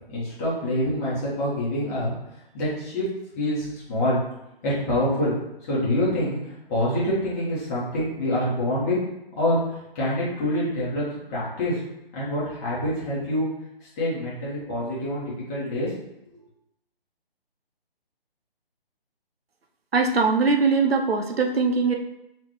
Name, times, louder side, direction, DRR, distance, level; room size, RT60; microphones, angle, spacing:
voice 1, 0.1-2.2 2.5-3.1 3.3-4.2 4.6-5.3 5.7-9.0 9.4-11.8 12.1-13.5 14.0-15.9 16.2-16.4, left 1 dB, 15° left, -7 dB, 1.0 m, -26 dB
voice 2, 19.9-21.9, right 4 dB, 80° right, 4 dB, 0.6 m, -21 dB
3.8 x 3.3 x 3.0 m, 0.85 s
figure-of-eight pair, 140°, 30 cm